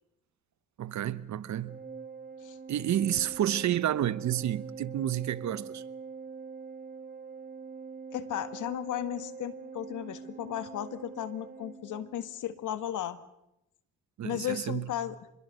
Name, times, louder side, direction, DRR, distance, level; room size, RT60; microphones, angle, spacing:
voice 1, 0.8-1.8 2.7-5.8 14.2-14.9, right 11 dB, 65° right, 1.1 m, -30 dB
Organ, 1.6-12.4, right 5 dB, 25° right, 1.3 m, -44 dB
voice 2, 8.1-13.2 14.2-15.2, left 11 dB, 75° left, 1.7 m, -35 dB
25.5 x 21.5 x 6.5 m
cardioid pair, 80°, 31 cm